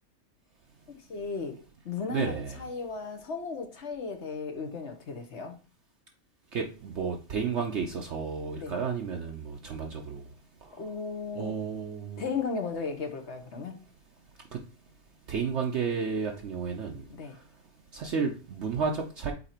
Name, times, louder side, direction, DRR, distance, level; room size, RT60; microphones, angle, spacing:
voice 1, 0.9-1.6 1.8-5.6 8.6-8.8 10.8-11.6 12.2-13.8 17.1-17.4, left 5 dB, 55° left, 1.1 m, -35 dB
voice 2, 2.1-2.6 6.5-10.3 10.6-10.8 11.3-12.2 14.5-14.6 15.3-17.5 17.9-19.3, right 5 dB, 60° right, 0.9 m, -32 dB
8.2 x 2.9 x 4.3 m
omnidirectional pair, 1.5 m